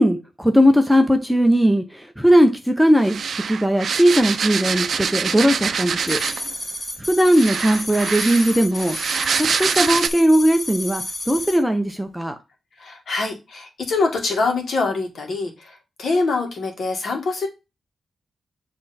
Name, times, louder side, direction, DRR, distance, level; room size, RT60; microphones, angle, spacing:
voice 1, 0.0-3.2 3.5-6.2 7.1-9.0 9.3-12.3, equal, ahead, 5 dB, 0.6 m, -18 dB
sound 1, 3.0-6.5 7.3-10.1, right 6 dB, 55° right, 0.5 m, -25 dB
sound 2, 6.1-11.6, left 2 dB, 20° left, 2.0 m, -31 dB
voice 2, 12.8-17.5, left 3 dB, 55° left, 3 dB, 1.8 m, -24 dB
7.7 x 3.3 x 4.1 m, 0.25 s
wide cardioid pair, 175°, 0 cm